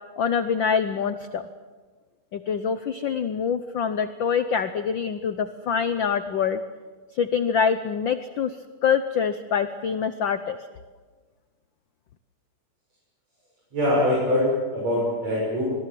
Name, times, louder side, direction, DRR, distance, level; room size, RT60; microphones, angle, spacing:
voice 1, 0.2-1.4 2.3-6.6 7.2-8.6 8.8-10.6, left 7 dB, 90° left, 11 dB, 1.0 m, -25 dB
voice 2, 13.7-15.6, left 1 dB, 65° right, -5 dB, 7.9 m, -23 dB
26.0 x 21.5 x 7.7 m, 1.4 s
omnidirectional pair, 3.3 m